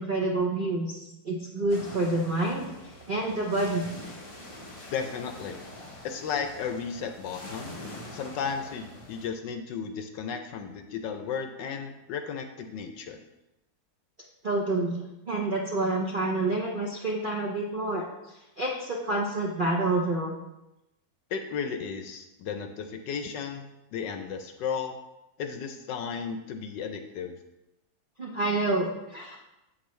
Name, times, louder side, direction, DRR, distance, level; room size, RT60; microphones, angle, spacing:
voice 1, 0.0-2.7 3.1-3.9 14.4-18.1 18.6-20.3 28.2-29.4, right 2 dB, 70° right, -2 dB, 0.5 m, -28 dB
sound 1, 1.7-9.3, left 1 dB, 40° left, 0.4 m, -44 dB
voice 2, 4.9-5.6 6.0-7.7 8.1-13.2 21.3-25.0 25.4-27.4, left 6 dB, 70° left, 7 dB, 1.2 m, -34 dB
8.0 x 6.2 x 3.1 m, 0.92 s
omnidirectional pair, 2.2 m